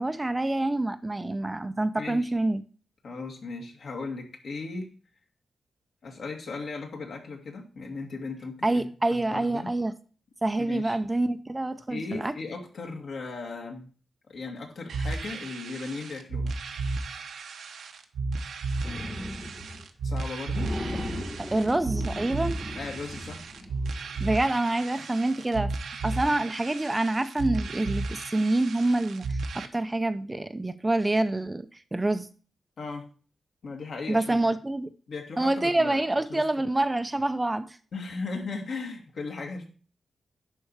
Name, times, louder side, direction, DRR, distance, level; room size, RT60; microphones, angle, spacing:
voice 1, 0.0-2.6 8.6-9.9 10.4-12.3 21.4-22.6 24.2-25.7 26.0-32.3 34.1-34.9 35.4-37.6, right 2 dB, 15° right, 0.5 m, -27 dB
voice 2, 1.9-2.3 3.0-4.9 6.0-9.7 10.6-11.0 11.9-13.9 14.3-16.6 20.0-20.7 22.7-23.4 32.8-33.0 33.6-34.5 35.1-36.0 36.3-36.4 37.9-39.7, left 4 dB, 65° left, 2.3 m, -37 dB
sound 1, 14.9-29.7, right 3 dB, 90° right, 1.0 m, -34 dB
sound 2, 18.8-19.8 20.1-20.2 20.5-23.9, left 1 dB, 15° left, 1.2 m, -36 dB
11.0 x 4.3 x 4.7 m
wide cardioid pair, 125°, 0 cm